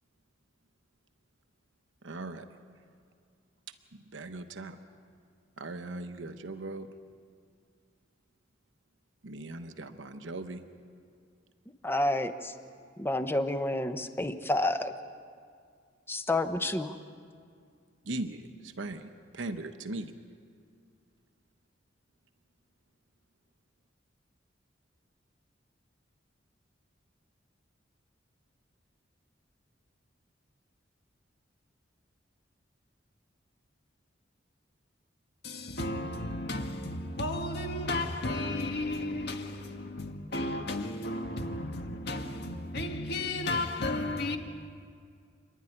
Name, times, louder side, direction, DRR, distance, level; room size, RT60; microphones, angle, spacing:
voice 1, 2.0-2.5 3.7-4.8 5.6-6.9 9.2-10.6 18.0-20.1, right 2 dB, 80° right, 0.9 m, -39 dB
voice 2, 11.8-12.5 13.0-14.9 16.1-17.0, left 1 dB, 10° left, 0.9 m, -29 dB
voice 3, 35.4-44.4, left 2 dB, 60° left, 1.8 m, -33 dB
28.0 x 11.5 x 9.9 m
head